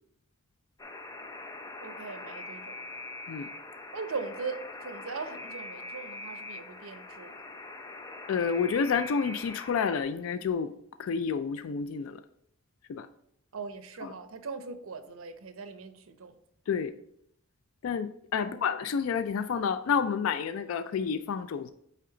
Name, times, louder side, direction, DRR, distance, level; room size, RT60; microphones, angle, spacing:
Alarm, 0.8-10.0, left 2 dB, 15° left, 0.5 m, -43 dB
voice 1, 1.8-2.8 3.9-7.3 13.5-16.4 18.4-18.7, right 4 dB, 75° right, 9 dB, 0.7 m, -40 dB
voice 2, 8.3-10.7 11.0-12.2 12.9-13.1 14.0-14.1 16.7-16.9 17.8-21.7, left 6 dB, 75° left, 11 dB, 0.3 m, -29 dB
8.6 x 3.4 x 3.8 m, 0.72 s
head